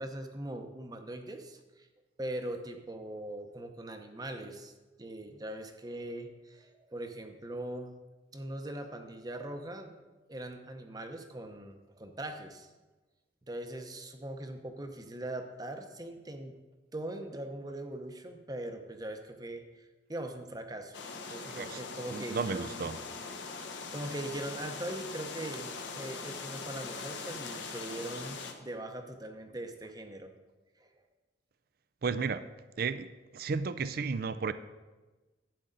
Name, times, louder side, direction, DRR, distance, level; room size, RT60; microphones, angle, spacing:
voice 1, 0.0-1.9 2.2-4.7 5.0-7.9 8.3-9.9 10.3-12.7 13.5-16.6 16.9-20.9 21.3-23.0 23.6-30.3 30.8-31.0, right 1 dB, 20° right, 6 dB, 0.7 m, -41 dB
sound 1, 20.9-28.5, left 4 dB, 70° left, 1.1 m, -41 dB
voice 2, 22.1-23.0 32.0-32.4 32.8-34.5, right 5 dB, 50° right, 13 dB, 0.4 m, -33 dB
12.0 x 8.7 x 3.9 m, 1.2 s
head